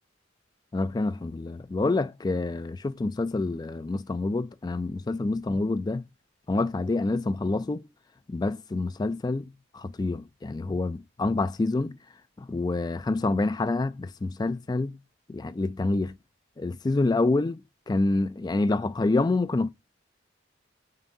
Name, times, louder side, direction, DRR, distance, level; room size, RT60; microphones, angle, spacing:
voice 1, 0.7-6.0 6.5-7.8 8.3-9.5 9.7-12.0 12.4-15.0 15.3-16.1 16.6-17.6 17.9-19.7, left 2 dB, 20° left, 0.3 m, -27 dB
9.1 x 4.0 x 2.7 m
head